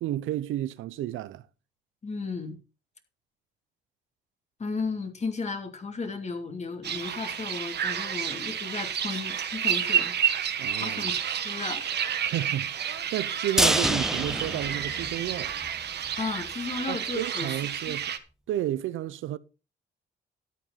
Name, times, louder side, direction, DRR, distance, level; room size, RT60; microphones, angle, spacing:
voice 1, 0.0-1.4 10.6-11.1 12.2-15.6 16.9-18.1 18.5-19.4, right 13 dB, 85° right, 0.7 m, -32 dB
voice 2, 2.0-2.6 4.6-10.2 10.7-12.1 16.2-17.5 17.8-18.0, left 4 dB, 35° left, 2.7 m, -34 dB
sound 1, 6.8-18.2, right 8 dB, 55° right, 1.5 m, -30 dB
sound 2, 13.6-15.7 16.0-16.1 16.5-16.6, right 1 dB, ahead, 0.5 m, -27 dB
13.0 x 9.1 x 4.1 m
cardioid pair, 90°, 20 cm